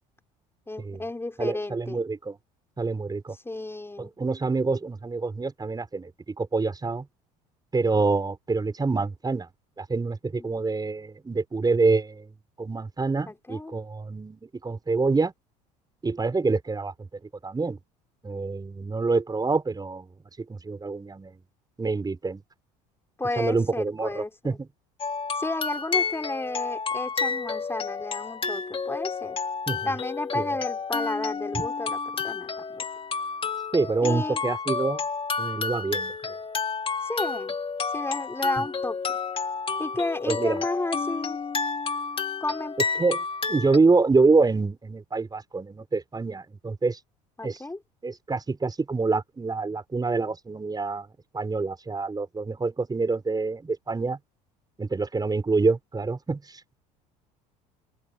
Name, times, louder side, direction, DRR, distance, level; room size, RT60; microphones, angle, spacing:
voice 1, 0.7-2.0 3.4-4.1 10.4-10.5 13.3-13.8 23.2-24.6 25.4-29.4 29.8-32.8 34.0-34.4 37.0-37.6 37.9-39.2 39.8-41.4 42.4-42.7 47.4-47.8, left 2 dB, 10° left, 6.4 m, -32 dB
voice 2, 1.4-2.4 2.8-3.3 4.0-7.1 7.7-9.5 9.8-15.3 16.0-17.1 17.4-17.8 18.2-20.1 20.4-21.4 21.8-22.4 23.3-24.7 29.7-29.9 30.3-30.6 31.5-31.6 33.7-35.0 35.4-36.4 40.3-40.6 43.0-47.0 47.4-47.6 48.0-51.1 51.3-54.2 54.8-56.8, right 3 dB, 20° right, 4.9 m, -26 dB
sound 1, 25.0-43.8, left 5 dB, 30° left, 2.7 m, -30 dB
open air
hypercardioid pair, 75°, 19 cm